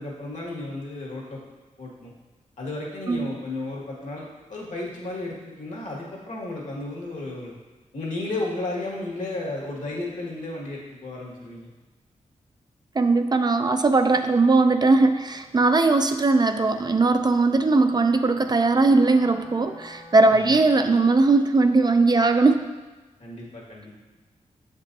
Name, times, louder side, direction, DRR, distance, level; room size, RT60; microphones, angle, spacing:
voice 1, 0.0-1.4 1.8-2.1 2.6-7.6 7.9-11.7 20.3-20.5 23.2-23.9, left 2 dB, 70° left, -3 dB, 1.7 m, -33 dB
voice 2, 13.0-22.6, right 3 dB, 30° right, 7 dB, 0.4 m, -19 dB
Wind instrument woodwind instrument, 17.8-21.2, left 1 dB, 85° left, 1.9 m, -46 dB
7.3 x 5.3 x 2.7 m, 1.2 s
cardioid pair, 70°, 13 cm